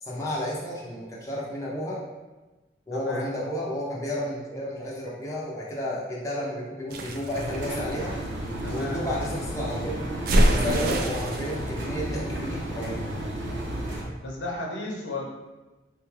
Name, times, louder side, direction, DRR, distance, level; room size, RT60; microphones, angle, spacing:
voice 1, 0.0-2.0 2.9-8.2 8.7-10.0 10.5-13.0, left 1 dB, 15° left, -6 dB, 0.4 m, -32 dB
voice 2, 2.9-3.3 8.6-9.1 10.8-11.0 14.2-15.2, left 2 dB, 75° left, -2 dB, 0.7 m, -34 dB
sound 1, 6.9-8.8 10.3-11.6, right 1 dB, 50° right, 0.3 m, -25 dB
Engine, 7.3-14.0, right 1 dB, 75° right, 0.7 m, -32 dB
3.7 x 2.3 x 3.1 m, 1.2 s
head